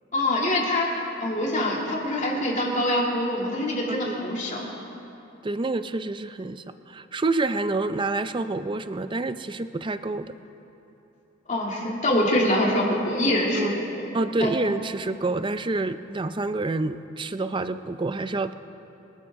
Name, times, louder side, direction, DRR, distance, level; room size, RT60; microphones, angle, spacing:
voice 1, 0.1-0.9 1.2-4.7 11.5-14.0 14.4-14.5, left 1 dB, 40° left, -3 dB, 2.6 m, -24 dB
voice 2, 5.4-10.3 13.6-13.8 14.1-18.5, right 2 dB, 25° right, 11 dB, 0.4 m, -28 dB
25.0 x 12.5 x 3.7 m, 3.0 s
head